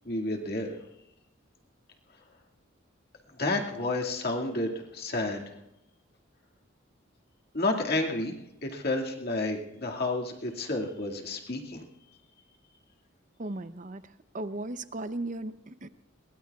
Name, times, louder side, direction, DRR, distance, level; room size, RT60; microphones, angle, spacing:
voice 1, 0.0-0.8 3.4-5.6 7.5-8.3 8.6-11.8, left 2 dB, 50° left, 1 dB, 2.1 m, -30 dB
voice 2, 13.4-15.9, right 2 dB, 40° right, 12 dB, 0.7 m, -37 dB
22.5 x 21.5 x 2.4 m, 0.91 s
head